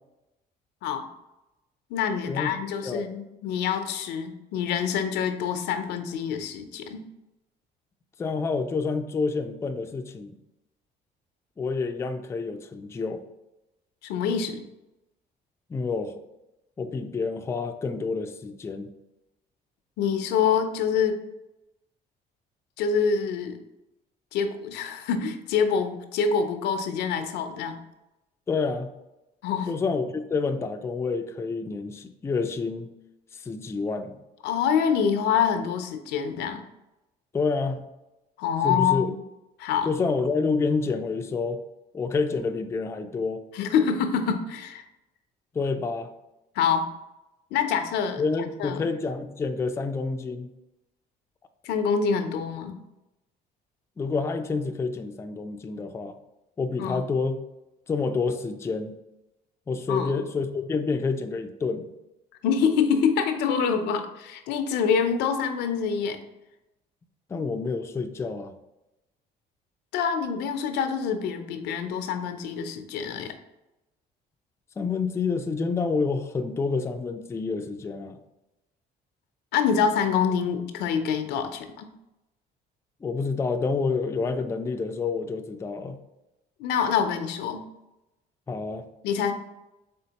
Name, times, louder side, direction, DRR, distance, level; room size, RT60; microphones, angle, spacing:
voice 1, 1.9-7.0 14.0-14.6 20.0-21.2 22.8-23.6 24.3-27.8 29.4-29.7 34.4-36.6 38.4-39.2 39.6-39.9 43.5-44.8 46.6-46.9 47.5-48.2 48.6-48.9 51.6-52.8 56.8-57.0 59.9-60.2 62.4-66.2 69.9-73.3 79.5-81.9 86.6-87.6 89.0-89.3, left 6 dB, 85° left, 7 dB, 0.5 m, -26 dB
voice 2, 8.2-10.4 11.6-13.2 15.7-16.2 16.8-18.9 28.5-28.9 29.7-32.9 33.3-34.2 37.3-37.8 38.6-39.1 39.8-41.6 41.9-43.4 45.5-46.1 48.2-50.5 54.0-56.2 56.6-57.4 57.9-59.0 59.7-61.9 67.3-68.5 74.8-78.2 83.0-86.0 88.5-88.9, left 4 dB, 15° left, 7 dB, 0.3 m, -28 dB
4.3 x 3.4 x 2.9 m, 0.94 s
cardioid pair, 110°, 17 cm